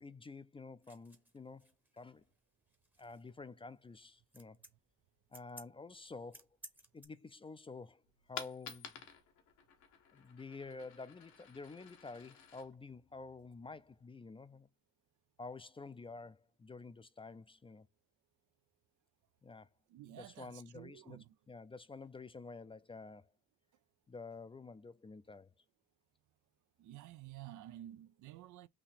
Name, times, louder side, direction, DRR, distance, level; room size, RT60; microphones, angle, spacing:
voice 1, 0.0-2.2 3.0-4.6 5.3-6.5 6.9-8.0 8.3-9.1 10.1-14.7 15.4-17.9 19.4-19.7 20.2-21.2 21.5-23.3 24.1-25.5, left 4 dB, 20° left, 0.4 m, -50 dB
sound 1, 0.8-7.1, right 1 dB, 5° right, 0.8 m, -58 dB
Coin (dropping), 8.0-14.0, left 8 dB, 85° left, 1.3 m, -53 dB
voice 2, 19.9-21.4 26.8-28.7, right 13 dB, 80° right, 0.5 m, -52 dB
4.3 x 2.7 x 4.1 m
cardioid pair, 90°, 30 cm